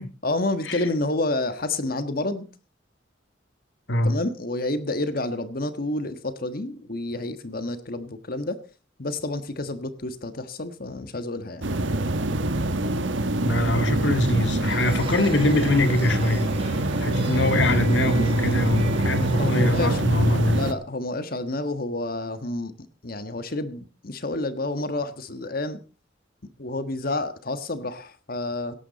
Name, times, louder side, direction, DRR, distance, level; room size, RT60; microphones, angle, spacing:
voice 1, 0.2-2.5 4.0-8.6 9.0-11.7 19.3-20.0 20.5-22.7 23.0-25.8 26.6-28.7, left 2 dB, 50° left, 1.4 m, -29 dB
sound 1, 11.6-20.7, right 1 dB, 90° right, 1.4 m, -25 dB
voice 2, 13.4-16.5 17.0-20.6, left 1 dB, 70° left, 1.9 m, -23 dB
sound 2, 14.6-19.9, right 2 dB, 30° right, 5.1 m, -34 dB
17.0 x 12.5 x 4.1 m
head